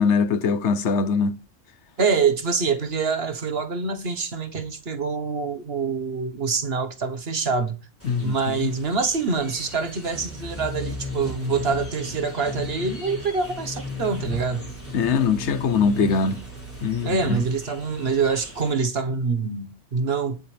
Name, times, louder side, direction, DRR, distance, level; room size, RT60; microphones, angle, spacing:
voice 1, 0.0-1.4 8.1-8.3 14.9-16.4 16.8-17.4, left 5 dB, 75° left, 1.1 m, -22 dB
voice 2, 2.0-7.8 8.2-14.7 17.0-20.4, right 5 dB, 60° right, 1.5 m, -25 dB
sound 1, 8.0-18.7, left 3 dB, 10° left, 4.3 m, -36 dB
20.0 x 7.8 x 3.4 m
omnidirectional pair, 1.2 m